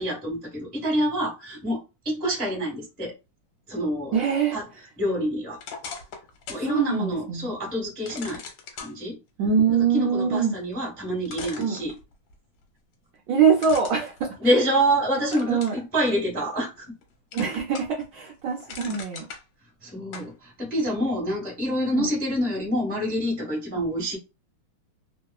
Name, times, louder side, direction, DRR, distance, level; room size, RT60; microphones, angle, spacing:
voice 1, 0.0-3.1 3.7-4.1 4.5-5.6 6.5-8.4 8.7-9.2 9.9-12.0 14.4-16.9 19.8-24.2, equal, 5° left, 0.7 m, -27 dB
voice 2, 4.1-4.6 6.7-7.5 9.4-10.5 11.6-11.8 13.3-14.3 15.5-15.7 17.3-19.2 21.9-22.0 23.8-23.9, right 6 dB, 70° right, 1.2 m, -23 dB
sound 1, 5.6-6.7 7.1-7.2 8.1-8.9 10.7-10.8 11.3-12.3 13.6-14.9 15.3-15.8 16.3-17.0 17.3-18.0 18.4-19.4 20.1-20.3, left 5 dB, 75° left, 1.5 m, -40 dB
3.5 x 2.0 x 2.3 m
omnidirectional pair, 2.4 m